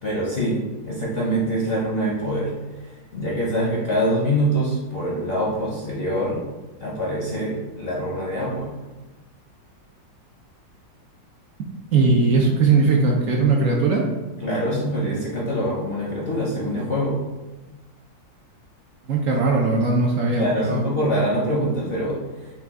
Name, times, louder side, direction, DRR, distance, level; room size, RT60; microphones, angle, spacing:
voice 1, 0.0-0.6 0.8-6.4 6.8-8.8 14.4-17.2 19.3-19.4 20.3-22.5, equal, 60° left, -5 dB, 0.6 m, -24 dB
voice 2, 11.9-14.1 19.1-20.8, right 3 dB, 75° right, -1 dB, 0.7 m, -19 dB
5.8 x 2.3 x 3.5 m, 1.1 s
omnidirectional pair, 2.0 m